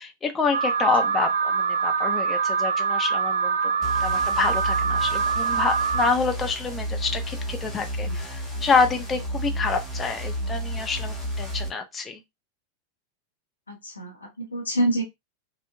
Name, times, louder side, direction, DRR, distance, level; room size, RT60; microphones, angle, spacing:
voice 1, 0.0-3.7 4.0-12.2, left 4 dB, 20° left, 0.5 m, -27 dB
Alarm, 0.5-6.1, right 5 dB, 60° right, 0.3 m, -24 dB
sound 1, 3.8-11.7, right 1 dB, 5° right, 0.9 m, -32 dB
voice 2, 13.7-15.0, right 1 dB, 80° left, 0.6 m, -27 dB
2.9 x 2.1 x 2.2 m
figure-of-eight pair, 90°, 0 cm